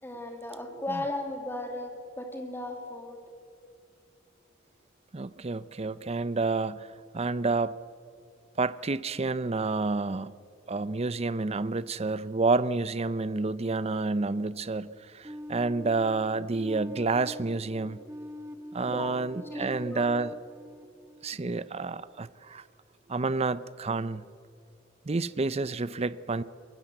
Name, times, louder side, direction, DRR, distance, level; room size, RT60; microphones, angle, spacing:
voice 1, 0.0-3.2 18.8-19.2 19.5-20.2, left 1 dB, 10° left, 4 dB, 2.6 m, -36 dB
voice 2, 5.1-6.9 7.1-7.7 8.6-10.3 10.7-18.0 18.7-20.3 21.2-22.6 23.1-24.2 25.1-26.4, right 3 dB, 30° right, 16 dB, 0.6 m, -29 dB
sound 1, 15.2-22.0, left 1 dB, 15° right, 1.2 m, -44 dB
23.5 x 21.5 x 8.0 m, 2.4 s
head